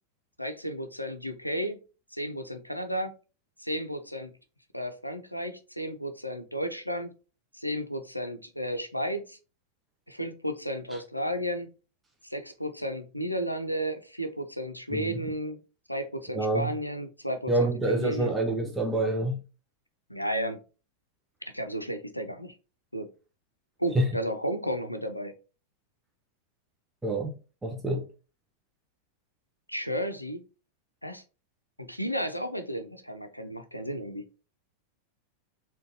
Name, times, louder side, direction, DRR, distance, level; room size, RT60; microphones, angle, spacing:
voice 1, 0.4-1.8 2.1-3.1 3.6-4.3 4.7-7.1 7.5-9.4 10.1-11.7 12.3-15.6 15.9-18.3 20.1-20.6 21.5-22.6 22.9-23.1 23.8-25.3 29.7-30.4 31.0-31.2 31.8-34.3, equal, 90° left, 0.4 m, -33 dB
voice 2, 16.3-16.7 17.5-19.4 23.9-24.1 27.0-27.3 27.6-28.1, right 2 dB, 10° right, 0.5 m, -27 dB
3.7 x 2.2 x 2.6 m
figure-of-eight pair, 90°, 0 cm